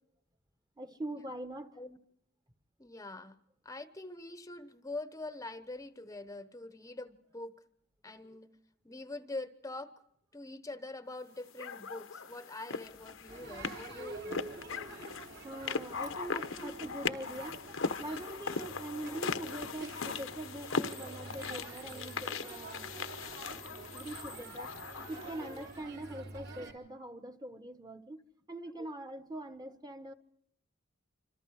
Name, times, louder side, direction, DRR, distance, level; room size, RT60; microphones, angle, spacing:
voice 1, 0.8-1.8 15.4-17.6 18.0-22.9 23.9-24.7 25.1-28.2 28.5-30.1, right 1 dB, 20° right, 1.3 m, -43 dB
voice 2, 2.8-3.4 3.6-7.6 8.0-8.6 8.8-9.9 10.3-14.5 16.3-16.8 24.3-24.4 24.9-25.1 25.4-25.7 28.8-28.9, left 2 dB, 15° left, 0.9 m, -44 dB
sound 1, 11.6-25.6, left 5 dB, 80° left, 1.1 m, -39 dB
sound 2, 12.8-26.4, equal, 80° right, 5.4 m, -65 dB
Crowd, 13.3-26.7, right 3 dB, 60° right, 3.5 m, -47 dB
26.5 x 26.0 x 4.9 m
head